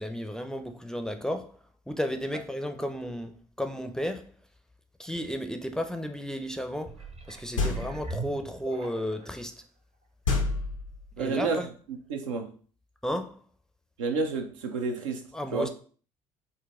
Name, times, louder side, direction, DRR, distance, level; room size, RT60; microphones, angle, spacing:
voice 1, 0.0-1.6 1.9-4.3 5.0-7.0 7.3-9.5 11.2-11.7 13.0-13.4 15.3-15.7, equal, 5° left, 0.5 m, -33 dB
sound 1, 6.8-9.4 10.0-10.1, right 4 dB, 40° right, 0.8 m, -41 dB
sound 2, 7.6-8.2 10.2-11.3, left 3 dB, 90° left, 0.6 m, -29 dB
voice 2, 11.2-11.7 12.1-12.5 14.0-15.2 15.5-15.7, right 4 dB, 80° right, 0.6 m, -29 dB
3.9 x 2.2 x 3.6 m
hypercardioid pair, 55°, 16 cm